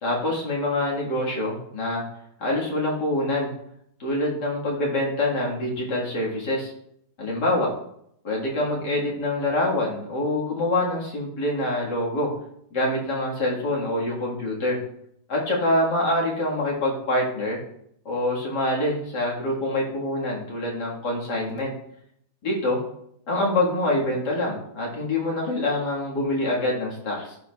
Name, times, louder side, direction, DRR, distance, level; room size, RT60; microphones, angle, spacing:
voice 1, 0.0-2.0 2.4-3.5 4.0-6.7 7.2-7.7 8.2-12.3 12.7-14.8 15.3-17.6 18.1-21.7 22.4-22.8 23.3-27.4, left 1 dB, 70° left, -4 dB, 2.3 m, -25 dB
12.0 x 4.7 x 2.3 m, 0.73 s
omnidirectional pair, 1.9 m